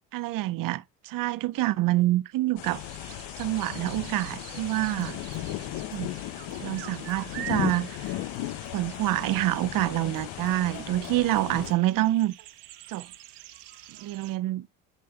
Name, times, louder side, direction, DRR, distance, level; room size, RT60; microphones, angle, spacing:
voice 1, 0.1-2.8 3.4-5.2 5.9-6.1 6.6-8.2 8.7-12.3 12.9-13.1 14.0-14.7, right 16 dB, 50° right, 0.4 m, -27 dB
sound 1, 2.6-11.7, left 14 dB, 75° left, 0.7 m, -36 dB
sound 2, 2.6-14.4, right 13 dB, 70° right, 0.9 m, -46 dB
sound 3, 4.5-11.9, left 6 dB, 90° left, 2.2 m, -52 dB
9.8 x 5.1 x 2.3 m
supercardioid pair, 80°, 43 cm